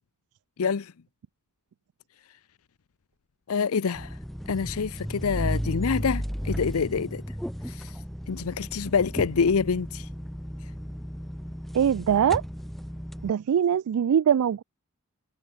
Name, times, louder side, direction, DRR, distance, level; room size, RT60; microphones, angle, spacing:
voice 1, 0.6-0.9 3.5-4.2 4.5-7.2 7.7-7.9 8.3-10.1, left 5 dB, 75° left, 0.6 m, -26 dB
sound 1, 3.9-13.3, equal, ahead, 2.4 m, -34 dB
voice 2, 11.7-12.4 13.2-14.6, right 8 dB, 80° right, 0.3 m, -22 dB
head